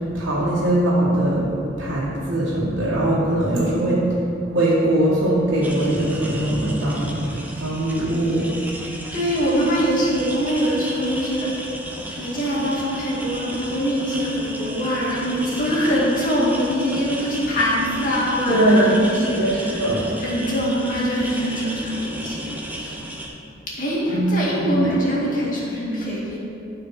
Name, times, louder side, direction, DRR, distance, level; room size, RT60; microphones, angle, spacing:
voice 1, 0.1-1.5 1.8-4.0 4.5-7.2 7.6-8.5 18.5-19.0 19.3-20.1 24.1-24.9, right 1 dB, 80° right, -9 dB, 1.8 m, -21 dB
sound 1, 5.6-23.3, right 1 dB, 10° right, 0.8 m, -34 dB
voice 2, 9.1-11.5 12.1-23.0 23.8-26.4, equal, 45° left, -5 dB, 2.1 m, -23 dB
12.5 x 4.9 x 4.4 m, 2.8 s
head